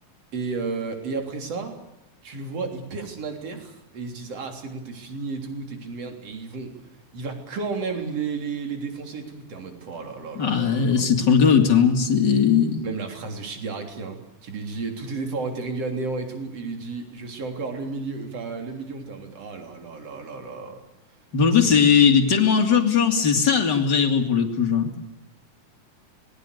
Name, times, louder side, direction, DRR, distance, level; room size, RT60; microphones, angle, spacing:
voice 1, 0.3-1.8 2.2-6.7 7.1-11.0 12.8-20.8 21.6-21.9, right 4 dB, 45° right, 4 dB, 4.2 m, -32 dB
voice 2, 10.4-12.8 21.3-24.9, left 6 dB, 30° left, 4 dB, 3.0 m, -19 dB
26.5 x 21.0 x 6.7 m, 0.92 s
omnidirectional pair, 4.2 m